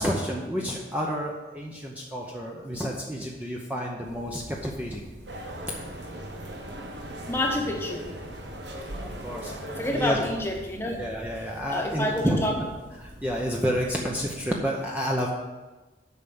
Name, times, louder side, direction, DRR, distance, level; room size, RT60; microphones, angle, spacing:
voice 1, 0.0-5.0 6.0-6.2 8.9-10.2 11.0-12.4 13.0-15.3, equal, 10° right, -2 dB, 0.7 m, -30 dB
sound 1, 4.0-14.3, equal, 85° right, 2.7 m, -46 dB
sound 2, 5.3-10.4, right 1 dB, 70° right, 1.3 m, -38 dB
voice 2, 7.3-8.1 9.8-11.0 11.7-12.6, left 1 dB, 15° left, 1 dB, 1.1 m, -28 dB
8.3 x 5.7 x 6.9 m, 1.2 s
head